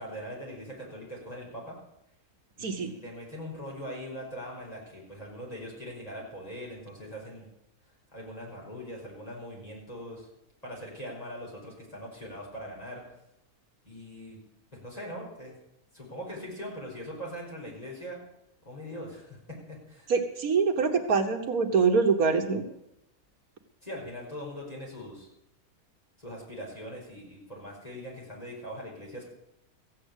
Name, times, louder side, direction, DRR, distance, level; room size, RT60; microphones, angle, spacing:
voice 1, 0.0-1.8 2.6-7.5 8.1-10.3 10.6-13.0 13.8-14.4 14.7-15.5 15.9-18.2 18.7-19.4 19.7-20.1 23.8-25.3 26.2-29.2, equal, 25° left, -3 dB, 5.3 m, -41 dB
voice 2, 2.6-2.9 20.1-22.6, right 5 dB, 75° right, 5 dB, 1.7 m, -24 dB
15.0 x 8.6 x 8.2 m, 0.83 s
omnidirectional pair, 1.5 m